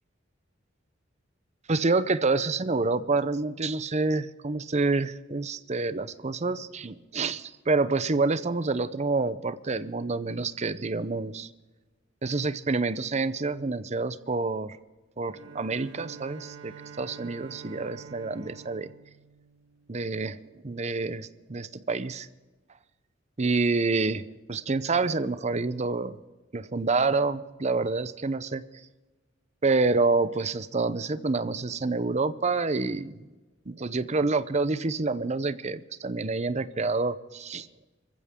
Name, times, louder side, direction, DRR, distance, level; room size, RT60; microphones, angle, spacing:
voice 1, 1.7-11.5 12.2-14.8 15.2-18.9 19.9-20.4 20.6-22.3 23.4-26.2 26.5-28.6 29.6-33.2 33.7-37.7, right 3 dB, 35° right, 14 dB, 0.7 m, -28 dB
Bowed string instrument, 15.3-20.4, right 5 dB, 75° right, 1.6 m, -47 dB
26.0 x 15.0 x 3.7 m, 1.2 s
head